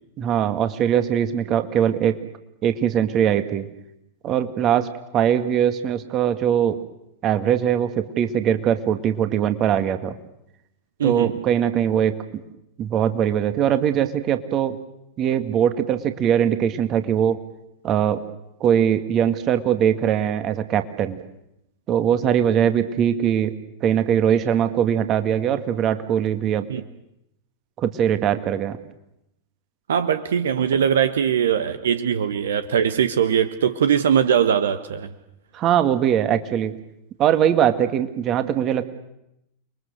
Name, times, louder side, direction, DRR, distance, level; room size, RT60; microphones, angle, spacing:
voice 1, 0.2-2.2 2.6-3.7 4.2-4.9 5.1-6.8 7.2-10.2 11.0-12.2 12.8-14.8 15.2-17.4 17.8-18.2 18.6-21.2 21.9-23.5 23.8-26.7 27.8-28.8 35.5-36.7 37.2-38.9, right 9 dB, 35° right, 9 dB, 2.2 m, -21 dB
voice 2, 11.0-11.3 26.7-26.8 29.9-35.1, right 8 dB, 65° right, 10 dB, 1.4 m, -21 dB
30.0 x 22.5 x 6.7 m, 0.84 s
figure-of-eight pair, 90°, 0 cm